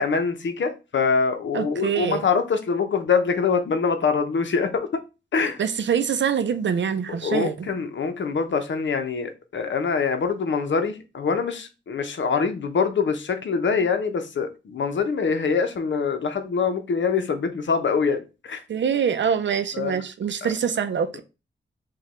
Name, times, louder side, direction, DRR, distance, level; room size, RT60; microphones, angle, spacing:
voice 1, 0.0-5.0 5.3-5.6 7.1-18.6 19.7-20.0 20.4-20.5, left 5 dB, 75° left, 0.7 m, -24 dB
voice 2, 1.5-2.2 5.6-7.7 18.7-21.2, right 7 dB, 70° right, 0.5 m, -24 dB
4.9 x 2.3 x 4.2 m
wide cardioid pair, 95°, 20 cm